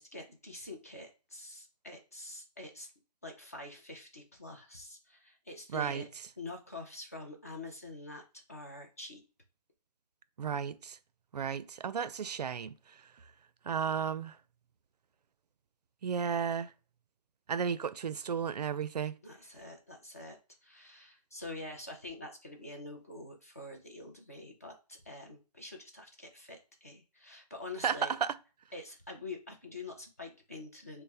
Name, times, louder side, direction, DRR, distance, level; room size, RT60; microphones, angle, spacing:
voice 1, 0.0-2.9 3.2-6.1 6.4-9.2 19.2-28.2 28.7-31.0, left 2 dB, 20° left, 0.5 m, -46 dB
voice 2, 5.7-6.0 10.4-11.0 11.3-12.7 13.6-14.4 16.0-16.7 17.5-19.2 27.8-28.3, right 7 dB, 75° right, 0.4 m, -33 dB
4.1 x 2.0 x 3.3 m
hypercardioid pair, 175°, 21 cm